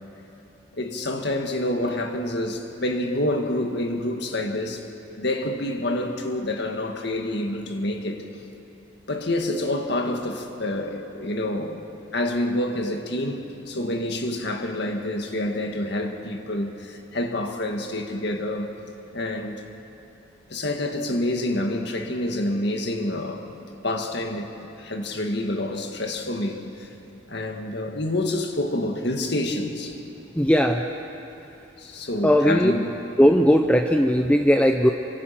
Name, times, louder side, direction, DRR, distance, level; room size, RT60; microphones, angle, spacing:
voice 1, 0.7-4.9 5.2-8.2 9.1-11.8 12.1-18.7 19.1-19.6 20.5-23.5 23.8-24.5 24.8-26.9 27.3-30.0 31.8-32.9, left 1 dB, 55° left, 2.0 m, -27 dB
voice 2, 30.4-30.8 32.2-32.7 33.2-34.9, equal, 5° left, 0.6 m, -18 dB
27.5 x 24.5 x 6.0 m
head